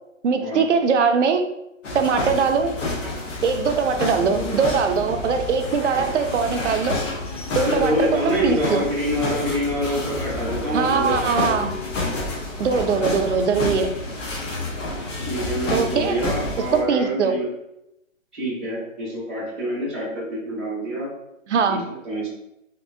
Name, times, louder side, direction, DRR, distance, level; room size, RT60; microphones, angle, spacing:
voice 1, 0.2-1.4 1.9-2.8 3.4-7.0 7.5-8.8 10.7-11.8 12.6-13.9 15.7-16.2 16.7-17.3 21.5-21.8, right 5 dB, 60° right, 6 dB, 0.6 m, -21 dB
sound 1, 1.8-16.8, left 2 dB, 65° left, 1.1 m, -29 dB
voice 2, 4.1-4.6 7.6-11.4 15.2-17.5 18.3-21.1 21.7-22.3, equal, ahead, -12 dB, 0.8 m, -26 dB
3.6 x 2.6 x 2.5 m, 0.84 s
hypercardioid pair, 160°, 41 cm